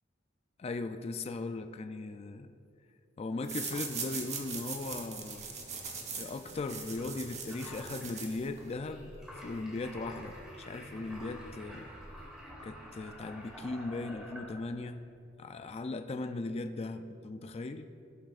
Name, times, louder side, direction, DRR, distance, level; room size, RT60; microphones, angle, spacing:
voice 1, 0.6-2.5 3.2-5.5 6.1-9.1 9.4-11.9 12.6-15.0 15.4-17.9, left 3 dB, 30° left, 8 dB, 0.3 m, -38 dB
sound 1, 3.4-8.7, right 5 dB, 35° right, 1.0 m, -41 dB
sound 2, 5.2-14.9, equal, 5° right, 2.3 m, -49 dB
16.5 x 7.5 x 2.5 m, 2.4 s
head